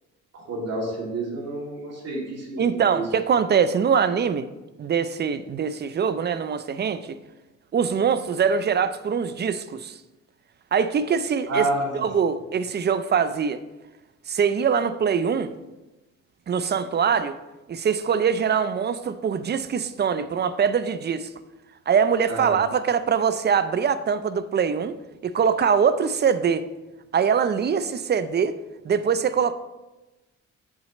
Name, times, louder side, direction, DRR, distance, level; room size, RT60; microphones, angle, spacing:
voice 1, 0.3-2.6 2.9-3.0 11.5-12.0 22.3-22.6, right 2 dB, 55° right, -2 dB, 2.4 m, -29 dB
voice 2, 2.6-4.5 4.8-7.2 7.7-10.0 10.7-11.7 11.9-13.6 14.3-15.5 16.5-17.4 17.7-21.3 21.9-25.0 25.2-26.6 27.1-28.6 28.8-29.5, right 6 dB, 35° right, 13 dB, 0.5 m, -23 dB
7.5 x 7.4 x 3.0 m, 1.1 s
cardioid pair, 90°, 30 cm